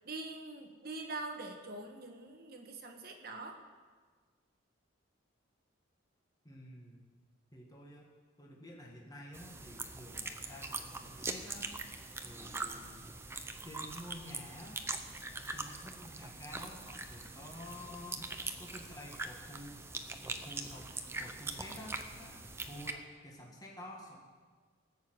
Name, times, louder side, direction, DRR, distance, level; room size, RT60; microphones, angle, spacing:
voice 1, 0.0-3.6, right 2 dB, 50° right, 3 dB, 1.3 m, -44 dB
voice 2, 6.4-7.1 7.5-8.1 8.4-11.7 12.2-13.0 13.6-14.9 15.5-19.9 20.2-24.2, left 1 dB, 20° left, -2 dB, 1.7 m, -50 dB
sound 1, 9.3-22.9, right 3 dB, 15° right, 0.7 m, -42 dB
18.5 x 6.7 x 7.9 m, 1.5 s
head